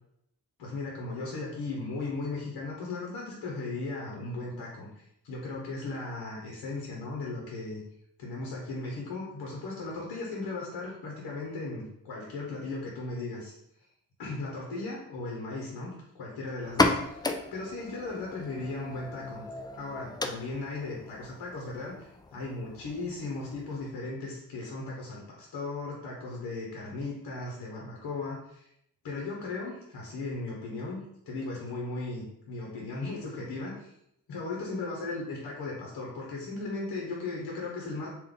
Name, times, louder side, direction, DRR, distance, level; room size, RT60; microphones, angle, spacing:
voice 1, 0.6-7.8 8.2-13.5 14.2-17.2 17.5-19.4 19.8-28.7 29.0-33.9 34.3-38.1, left 3 dB, 60° left, -3 dB, 1.2 m, -37 dB
sound 1, 16.6-24.1, left 2 dB, 10° left, 0.3 m, -34 dB
3.4 x 2.6 x 3.8 m, 0.76 s
supercardioid pair, 55°, 40 cm